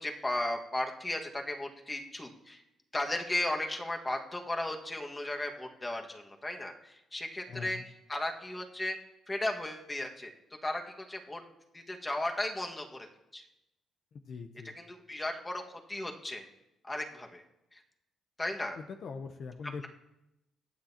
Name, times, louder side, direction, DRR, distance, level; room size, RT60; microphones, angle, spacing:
voice 1, 0.0-2.6 2.9-7.8 8.1-9.0 9.3-10.3 10.6-11.4 11.7-13.1 13.3-13.4 14.7-15.6 15.9-16.5 16.8-17.4 17.7-17.8 18.4-18.8, left 1 dB, 20° left, 2 dB, 1.7 m, -35 dB
voice 2, 7.5-7.8 14.3-14.8 18.8-19.9, left 5 dB, 60° left, 6 dB, 0.7 m, -42 dB
23.5 x 9.0 x 2.9 m, 0.91 s
cardioid pair, 90°, 0 cm